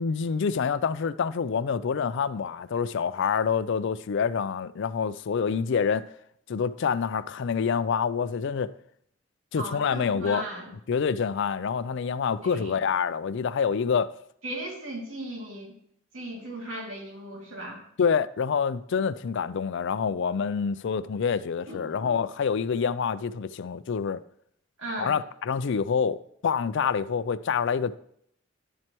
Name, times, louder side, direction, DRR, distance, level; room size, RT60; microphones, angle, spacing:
voice 1, 0.0-6.0 6.5-8.7 9.5-10.4 10.9-14.1 18.0-24.2 25.0-28.0, left 6 dB, 65° left, 0.4 m, -27 dB
voice 2, 9.5-10.7 12.4-12.8 14.4-15.7 16.1-17.8 21.7-22.1 24.8-25.2, right 1 dB, 75° right, 2.6 m, -37 dB
11.0 x 7.6 x 3.0 m
head